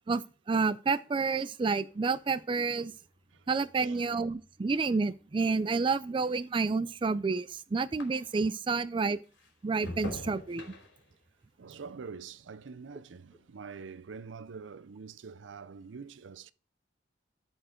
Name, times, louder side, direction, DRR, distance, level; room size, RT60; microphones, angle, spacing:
voice 1, 0.1-2.9 3.5-9.2 9.6-10.6, right 4 dB, 25° right, 0.3 m, -29 dB
sound 1, 1.9-8.6 9.0-13.5 13.8-14.3, left 1 dB, 80° left, 2.9 m, -49 dB
voice 2, 3.7-4.1 11.6-16.5, right 5 dB, 80° right, 0.5 m, -45 dB
12.5 x 4.5 x 4.4 m
head